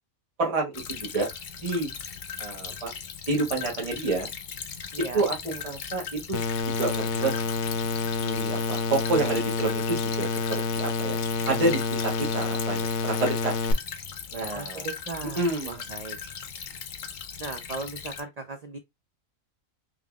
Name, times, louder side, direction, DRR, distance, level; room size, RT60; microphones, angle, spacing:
voice 1, 0.4-1.3 1.6-1.9 2.4-2.9 3.3-4.3 5.1-6.4 6.8-7.3 8.2-13.5 14.3-14.9 15.4-15.8, right 2 dB, 30° right, 1.0 m, -28 dB
Stream / Trickle dribble, 0.7-18.2, left 7 dB, 60° left, 0.5 m, -38 dB
voice 2, 4.9-5.3 14.5-16.2 17.4-18.8, right 4 dB, 90° right, 0.3 m, -37 dB
sound 1, 6.3-13.7, left 3 dB, 85° left, 1.1 m, -28 dB
3.7 x 3.3 x 2.3 m
omnidirectional pair, 1.4 m